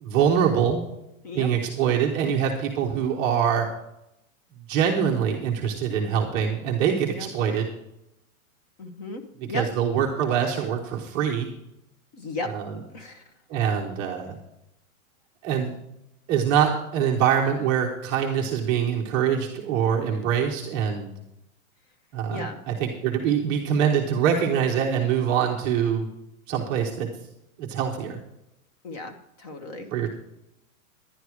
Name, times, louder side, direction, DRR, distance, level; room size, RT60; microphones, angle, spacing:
voice 1, 0.0-0.8 1.3-3.7 4.7-7.7 9.5-11.5 12.5-12.7 13.5-14.4 15.4-15.7 16.3-21.1 22.1-26.1 26.5-27.1 27.6-28.2 29.9-30.1, right 8 dB, 15° right, -1 dB, 0.7 m, -24 dB
voice 2, 8.8-9.7 12.1-12.5 12.9-13.2 22.3-22.6 28.8-30.1, left 2 dB, 30° left, 8 dB, 1.0 m, -35 dB
11.0 x 10.5 x 4.8 m, 0.84 s
hypercardioid pair, 165°, 43 cm